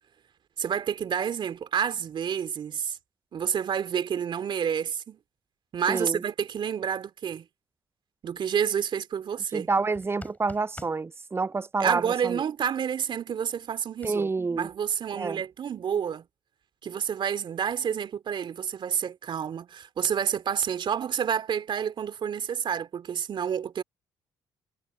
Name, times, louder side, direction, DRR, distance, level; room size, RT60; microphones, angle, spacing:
voice 1, 0.6-3.0 3.3-5.2 5.7-7.5 8.2-9.7 11.8-14.3 14.6-16.2 16.8-23.8, right 8 dB, 50° right, 2.6 m, -29 dB
voice 2, 5.9-6.2 9.5-12.4 14.0-14.7 15.1-15.4, right 4 dB, 25° right, 0.6 m, -28 dB
sound 1, 9.9-11.0 14.0-14.1, left 2 dB, 15° left, 4.0 m, -44 dB
hypercardioid pair, 55°, 10 cm